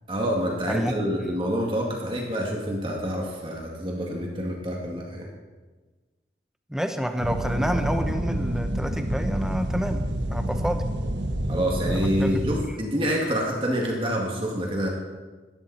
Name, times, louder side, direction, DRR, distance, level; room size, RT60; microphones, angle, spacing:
voice 1, 0.1-5.3 11.5-14.9, equal, 30° right, -1 dB, 2.4 m, -27 dB
voice 2, 0.6-1.0 6.7-10.0 10.3-10.8 11.9-12.3, equal, 5° right, 6 dB, 0.9 m, -28 dB
sound 1, 7.2-12.6, right 1 dB, 85° right, 1.6 m, -28 dB
18.5 x 13.0 x 4.4 m, 1.3 s
head